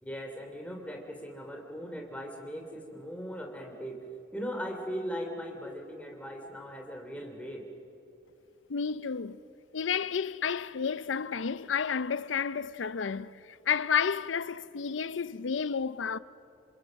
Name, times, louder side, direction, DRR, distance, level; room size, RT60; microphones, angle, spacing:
voice 1, 0.0-4.0 4.3-7.6, equal, 5° left, 3.1 m, -39 dB
voice 2, 8.7-9.4 9.7-16.2, left 6 dB, 85° left, 0.6 m, -31 dB
27.0 x 26.5 x 6.5 m
head